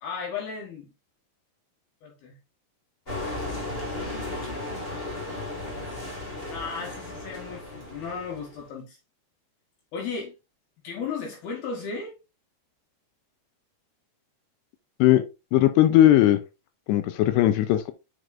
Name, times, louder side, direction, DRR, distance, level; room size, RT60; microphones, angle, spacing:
voice 1, 0.0-0.9 2.0-2.4 4.4-4.5 6.4-9.0 9.9-10.3 10.8-12.2, left 5 dB, 65° left, 3.0 m, -35 dB
sound 1, 3.1-8.6, left 2 dB, 35° left, 0.8 m, -35 dB
voice 2, 15.5-16.4 16.9-17.9, left 13 dB, 80° left, 2.6 m, -18 dB
8.0 x 6.0 x 2.5 m
omnidirectional pair, 5.2 m